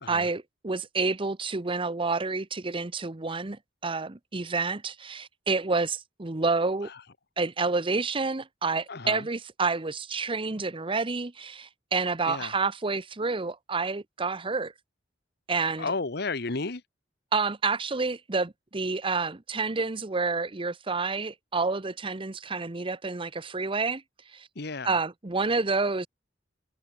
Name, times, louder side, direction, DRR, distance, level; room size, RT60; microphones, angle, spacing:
voice 1, 0.1-6.9 7.4-14.7 15.5-15.9 17.3-24.0 24.3-24.5 24.8-26.1, right 4 dB, 30° right, 0.9 m, -29 dB
voice 2, 8.9-9.3 12.3-12.5 15.8-16.8 24.5-25.0, left 3 dB, 60° left, 1.4 m, -33 dB
head